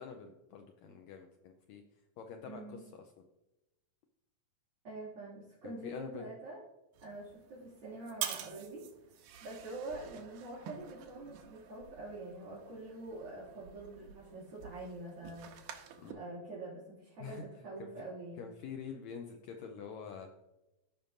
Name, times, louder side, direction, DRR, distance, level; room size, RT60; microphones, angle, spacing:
voice 1, 0.0-1.8 2.2-3.0 5.6-6.3 16.0-16.2 17.2-17.4 17.8-17.9 18.4-20.4, left 6 dB, 85° left, 4 dB, 1.6 m, -46 dB
voice 2, 2.4-2.9 4.8-6.6 7.0-8.9 9.4-15.5 16.1-18.5, right 2 dB, 45° right, -10 dB, 3.4 m, -45 dB
sound 1, 6.9-16.1, right 9 dB, 80° right, 2.1 m, -47 dB
15.0 x 5.2 x 2.6 m, 0.96 s
omnidirectional pair, 3.9 m